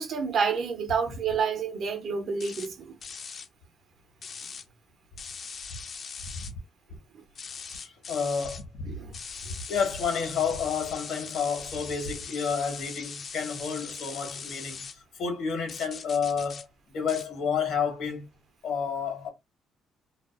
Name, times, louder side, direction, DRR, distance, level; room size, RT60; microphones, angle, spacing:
voice 1, 0.0-3.0 7.1-7.2 8.8-9.1, right 6 dB, 60° right, 0.6 m, -29 dB
sound 1, 2.4-2.7 3.0-3.5 4.2-4.6 5.2-6.5 7.3-8.6 9.1-14.9 15.7-16.6 17.1-17.3, left 6 dB, 45° left, 0.4 m, -40 dB
voice 2, 7.7-8.7 9.7-14.8 15.2-16.7 16.9-18.2 18.6-19.3, left 6 dB, 85° left, 1.1 m, -30 dB
2.4 x 2.4 x 2.3 m
cardioid pair, 110°, 0 cm